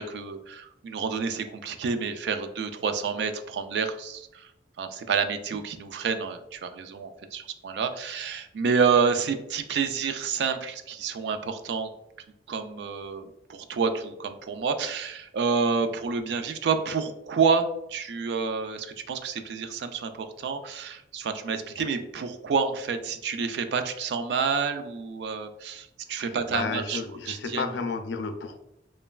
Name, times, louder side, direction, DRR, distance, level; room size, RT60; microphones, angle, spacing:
voice 1, 0.0-4.5 4.8-11.9 12.5-27.6, right 5 dB, 75° right, 8 dB, 0.3 m, -29 dB
voice 2, 26.2-28.6, left 4 dB, 85° left, 7 dB, 0.4 m, -32 dB
3.1 x 2.2 x 2.3 m, 0.82 s
head